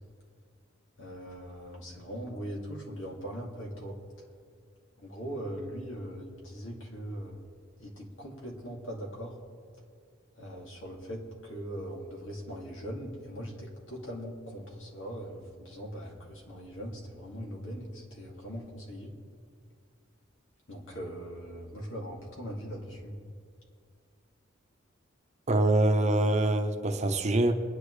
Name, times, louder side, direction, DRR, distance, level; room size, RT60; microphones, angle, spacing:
voice 1, 1.0-4.0 5.0-7.4 7.8-9.3 10.4-19.1 20.7-23.1, equal, 75° left, -2 dB, 2.5 m, -40 dB
voice 2, 25.5-27.5, right 1 dB, 35° right, 5 dB, 0.8 m, -24 dB
22.5 x 10.0 x 3.3 m, 2.2 s
head